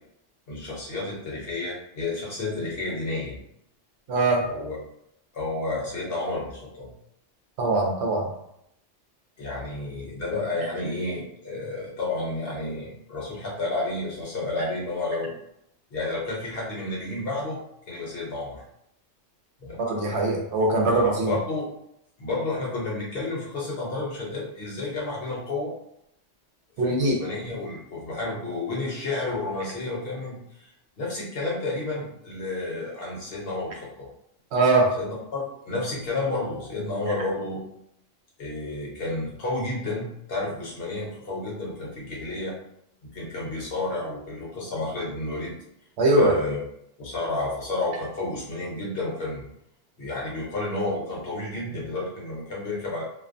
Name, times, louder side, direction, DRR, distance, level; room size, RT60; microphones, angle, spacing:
voice 1, 0.5-3.4 4.4-4.8 5.3-6.9 9.4-15.3 15.9-17.6 17.9-18.6 19.6-19.8 20.9-21.7 22.2-25.7 26.8-30.7 31.0-34.1 35.0-37.6 38.4-42.6 43.1-45.6 46.1-46.6 47.0-49.4 50.0-53.0, left 2 dB, 55° left, -4 dB, 1.0 m, -31 dB
voice 2, 4.1-4.5 7.6-8.3 19.8-21.3 26.8-27.2 34.5-34.9 46.0-46.3, right 2 dB, 70° right, 0 dB, 0.8 m, -21 dB
2.5 x 2.1 x 2.5 m, 0.76 s
omnidirectional pair, 1.2 m